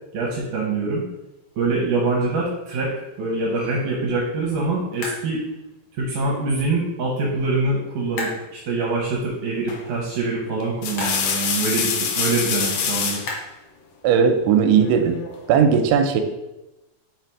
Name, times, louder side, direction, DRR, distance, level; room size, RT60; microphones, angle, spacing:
voice 1, 0.1-1.1 1.6-5.4 5.9-13.2, right 3 dB, 65° right, -3 dB, 2.1 m, -24 dB
sound 1, 1.1-14.3, left 2 dB, 60° left, 1.6 m, -40 dB
sound 2, 9.7-10.0 10.6-13.3 14.8-15.4, left 6 dB, 85° left, 1.7 m, -25 dB
voice 2, 14.0-15.2 15.5-16.2, right 7 dB, 90° right, 6 dB, 2.7 m, -17 dB
5.5 x 4.1 x 4.6 m, 0.96 s
omnidirectional pair, 4.6 m